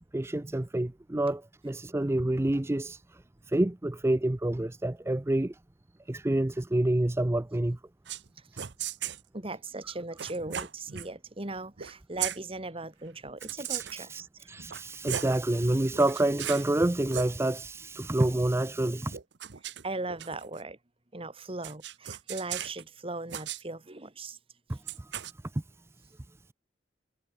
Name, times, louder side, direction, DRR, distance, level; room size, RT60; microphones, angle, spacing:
voice 1, 0.1-5.6 6.1-7.8 13.6-14.2 14.5-19.2 24.7-25.1 25.5-25.6, right 1 dB, 15° right, 0.5 m, -28 dB
sound 1, 8.1-8.3 8.6-9.2 10.2-11.1 11.8-12.4 13.4-14.0 14.6-15.4 15.9-16.7 17.0-17.3 19.1-20.6 21.6-22.8 23.3-23.6 24.9-25.3, right 10 dB, 65° right, 0.8 m, -37 dB
voice 2, 9.3-14.5 19.6-20.8 21.1-24.4, right 2 dB, 30° right, 2.0 m, -38 dB
head